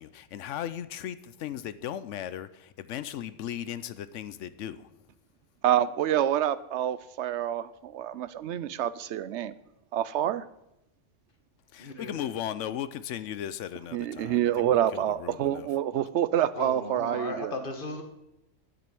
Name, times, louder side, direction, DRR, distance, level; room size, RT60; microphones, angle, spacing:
voice 1, 0.0-4.9 11.7-14.5 14.9-15.7, left 10 dB, 85° left, 14 dB, 1.0 m, -37 dB
voice 2, 5.6-9.5 9.9-10.5 13.9-17.6, right 11 dB, 75° right, 16 dB, 0.8 m, -27 dB
voice 3, 11.8-12.2 16.5-18.0, left 2 dB, 45° left, 5 dB, 1.6 m, -36 dB
9.3 x 7.5 x 8.3 m, 0.85 s
omnidirectional pair, 1.2 m